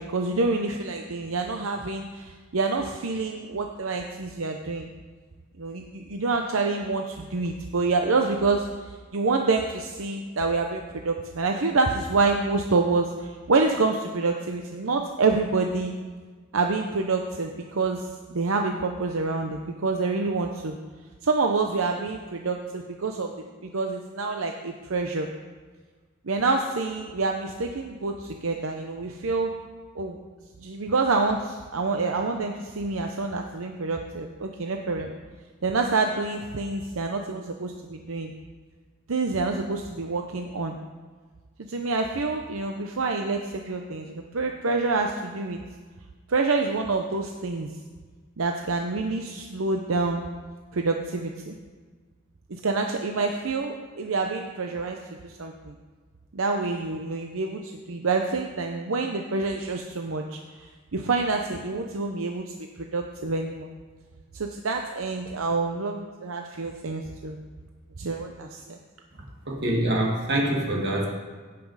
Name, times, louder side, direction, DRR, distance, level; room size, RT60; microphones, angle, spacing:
voice 1, 0.0-4.9 5.6-8.7 9.1-15.9 16.5-20.8 21.2-23.3 23.6-25.3 26.2-29.5 29.9-30.2 30.6-35.1 35.6-38.3 39.1-40.8 41.7-45.6 46.3-47.7 48.4-50.2 50.7-51.6 52.6-55.7 56.3-60.7 60.9-62.4 62.8-63.7 64.3-67.4 68.0-68.8, right 3 dB, 80° right, 3 dB, 0.7 m, -27 dB
voice 2, 69.5-71.1, right 1 dB, 55° right, -1 dB, 2.1 m, -25 dB
16.5 x 6.0 x 4.8 m, 1.5 s
head